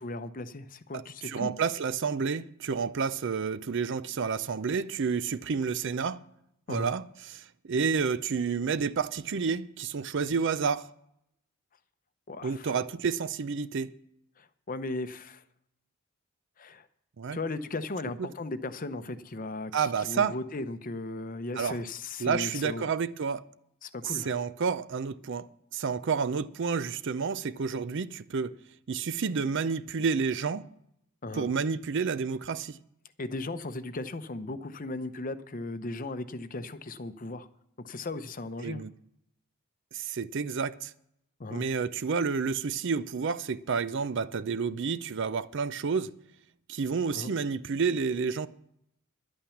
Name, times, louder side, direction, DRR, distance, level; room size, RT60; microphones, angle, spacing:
voice 1, 0.0-1.5 6.7-6.9 12.3-12.7 14.4-15.4 16.6-16.9 17.3-22.9 23.8-24.3 31.2-31.5 33.2-37.5 37.8-38.8 41.4-41.6 47.1-47.3, left 2 dB, 40° left, 0.7 m, -37 dB
voice 2, 0.9-6.2 6.7-10.9 12.4-13.9 17.2-17.4 19.7-20.3 21.6-21.8 22.2-23.4 24.1-25.5 25.7-28.5 28.9-30.7 31.3-32.8 38.6-38.9 39.9-40.9 41.5-46.1 46.7-48.5, right 5 dB, 55° right, 0.5 m, -30 dB
11.5 x 8.9 x 7.1 m
head